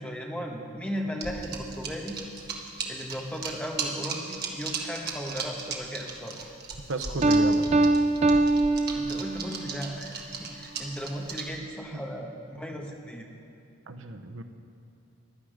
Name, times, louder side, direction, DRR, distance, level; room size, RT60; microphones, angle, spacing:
voice 1, 0.0-2.2 2.8-6.5 8.9-13.3, equal, 5° left, 0 dB, 1.2 m, -36 dB
sound 1, 1.2-11.6, right 5 dB, 50° right, 1.5 m, -35 dB
voice 2, 6.9-7.7 13.9-14.4, right 2 dB, 75° right, 8 dB, 0.8 m, -33 dB
Piano, 7.2-9.7, right 2 dB, 30° right, 0.4 m, -23 dB
15.5 x 11.5 x 5.0 m, 2.7 s
head